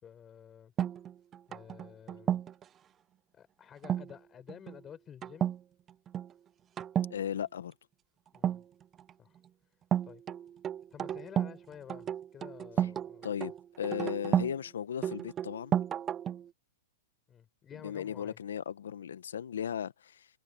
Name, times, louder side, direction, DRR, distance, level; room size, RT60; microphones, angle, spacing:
voice 1, 0.0-0.7 1.5-2.4 3.3-5.5 8.3-8.6 9.2-9.4 10.0-10.2 10.9-13.3 17.3-18.4, left 8 dB, 25° left, 5.0 m, -51 dB
sound 1, 0.8-2.6 3.8-4.1 4.5-4.8 5.2-5.6 5.9-6.3 6.8-7.2 8.4-9.1 9.9-11.6 11.9-14.6 15.0-16.5, right 10 dB, 25° right, 0.4 m, -32 dB
voice 2, 7.1-7.7 13.2-15.8 17.7-20.3, left 8 dB, 85° left, 1.2 m, -36 dB
hypercardioid pair, 125°, 0 cm